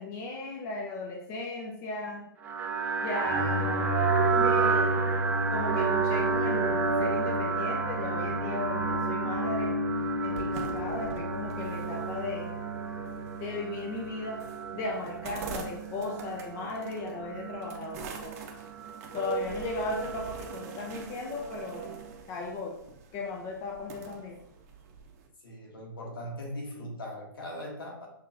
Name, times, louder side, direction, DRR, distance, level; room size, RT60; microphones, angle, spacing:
voice 1, 0.0-2.3 3.0-3.9 4.3-5.0 5.5-9.7 10.2-12.5 13.4-14.4 14.7-18.3 19.1-22.0 22.3-22.8 23.1-24.4, left 3 dB, 25° left, 0 dB, 0.6 m, -36 dB
sound 1, 2.4-22.1, right 3 dB, 15° right, 0.4 m, -30 dB
sound 2, 10.0-25.3, right 5 dB, 40° right, 0.8 m, -46 dB
voice 2, 25.4-28.1, equal, 75° left, -1 dB, 1.6 m, -39 dB
6.5 x 3.0 x 2.5 m, 0.78 s
hypercardioid pair, 130°, 12 cm